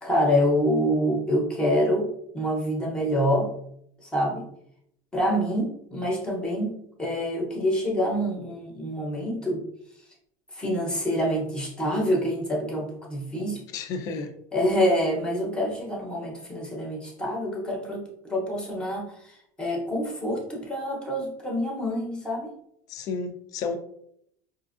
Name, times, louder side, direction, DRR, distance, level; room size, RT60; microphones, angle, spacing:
voice 1, 0.0-3.5 4.0-4.5 5.1-9.6 10.5-13.6 14.5-22.5, equal, 10° left, -2 dB, 0.7 m, -26 dB
voice 2, 13.7-14.3 22.9-23.8, left 4 dB, 40° left, 7 dB, 0.5 m, -31 dB
5.0 x 2.5 x 2.4 m, 0.71 s
cardioid pair, 165°, 10 cm